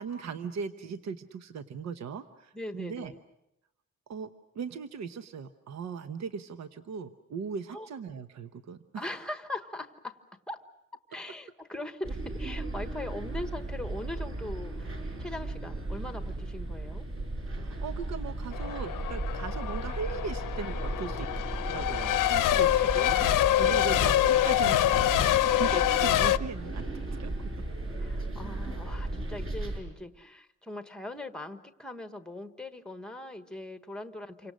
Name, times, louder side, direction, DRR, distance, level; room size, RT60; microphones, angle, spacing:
voice 1, 0.0-3.1 4.1-4.3 4.5-9.0 17.5-21.3 21.7-23.2 23.6-27.3, right 5 dB, 60° right, 9 dB, 1.0 m, -38 dB
voice 2, 2.5-3.2 7.7-7.9 8.9-10.2 10.5-10.7 11.1-14.9 15.2-17.1 23.2-23.5 28.0-34.5, left 1 dB, 5° left, 8 dB, 1.2 m, -40 dB
sound 1, 12.0-29.8, right 2 dB, 45° right, 5.7 m, -35 dB
Race car auto racing / Accelerating revving vroom / Mechanisms, 18.5-26.4, left 13 dB, 85° left, 0.8 m, -26 dB
28.5 x 25.0 x 6.4 m, 0.87 s
cardioid pair, 165°, 31 cm